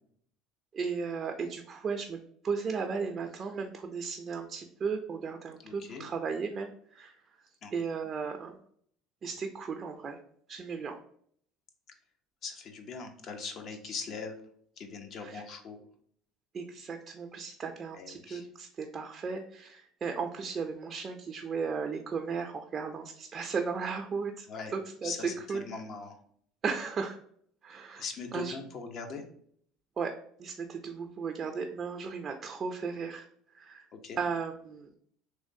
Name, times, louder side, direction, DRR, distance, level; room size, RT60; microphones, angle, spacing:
voice 1, 0.7-2.2 2.4-7.1 7.7-8.6 9.2-10.2 10.5-10.9 15.2-15.4 16.5-24.5 24.7-25.6 26.6-27.2 27.6-28.0 28.3-28.6 30.0-30.1 30.4-33.3 33.5-33.8 34.2-34.9, right 5 dB, 35° right, 4 dB, 0.4 m, -35 dB
voice 2, 5.6-6.1 7.6-7.7 12.4-14.4 14.8-15.9 17.9-18.5 24.5-24.7 25.0-26.2 28.0-29.2 33.9-34.2, left 4 dB, 50° left, 5 dB, 0.7 m, -41 dB
3.1 x 3.0 x 2.7 m, 0.62 s
supercardioid pair, 90°, 0 cm